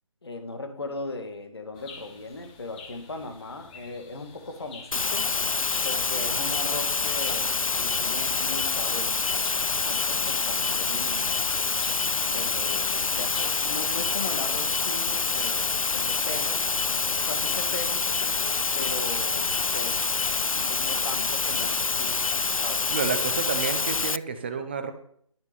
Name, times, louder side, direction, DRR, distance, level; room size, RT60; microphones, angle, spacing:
voice 1, 0.2-5.3 5.8-9.3 9.8-11.4 12.2-16.7 17.1-20.1 20.5-22.9, left 2 dB, 50° left, 5 dB, 2.4 m, -38 dB
sound 1, 1.7-13.6, left 4 dB, 15° left, 1.5 m, -48 dB
sound 2, 4.9-24.2, left 4 dB, 80° left, 0.4 m, -26 dB
voice 2, 22.9-24.9, right 6 dB, 20° right, 9 dB, 0.9 m, -30 dB
12.0 x 8.1 x 5.5 m, 0.64 s
figure-of-eight pair, 155°, 17 cm